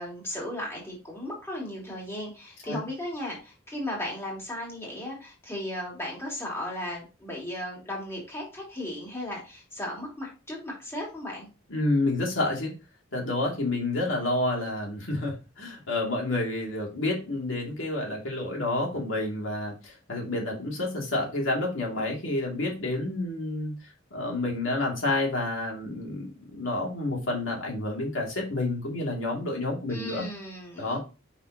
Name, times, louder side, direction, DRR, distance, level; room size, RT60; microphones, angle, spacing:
voice 1, 0.0-11.5 29.9-31.0, left 1 dB, 15° left, -3 dB, 2.7 m, -36 dB
voice 2, 11.7-12.7 13.1-23.7 24.1-30.3 30.8-31.0, left 2 dB, 85° left, -1 dB, 2.6 m, -29 dB
6.8 x 5.7 x 2.9 m, 0.30 s
head